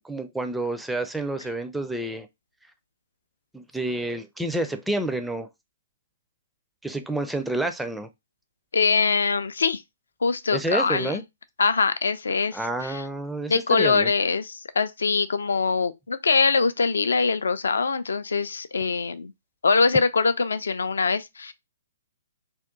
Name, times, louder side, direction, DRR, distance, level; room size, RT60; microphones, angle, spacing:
voice 1, 0.0-2.3 3.5-5.5 6.8-8.1 10.5-11.2 12.5-14.1, right 2 dB, 5° right, 0.4 m, -29 dB
voice 2, 8.7-9.8 10.2-11.2 11.6-13.0 13.5-19.3 19.6-21.5, left 4 dB, 65° left, 0.4 m, -23 dB
3.5 x 2.3 x 3.7 m
figure-of-eight pair, 125°, 0 cm